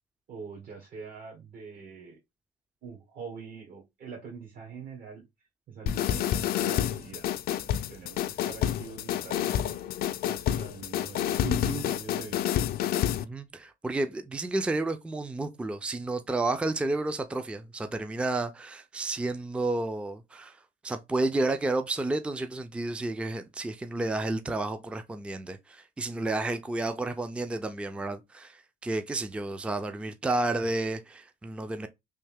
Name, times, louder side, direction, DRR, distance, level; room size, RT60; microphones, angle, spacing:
voice 1, 0.3-2.2 2.8-5.2 5.7-7.2 7.6-12.5, right 6 dB, 60° right, 1.2 m, -43 dB
sound 1, 5.9-13.2, left 11 dB, 65° left, 0.4 m, -29 dB
voice 2, 13.2-31.9, right 2 dB, 5° right, 0.4 m, -31 dB
3.2 x 2.6 x 3.5 m
cardioid pair, 110°, 17 cm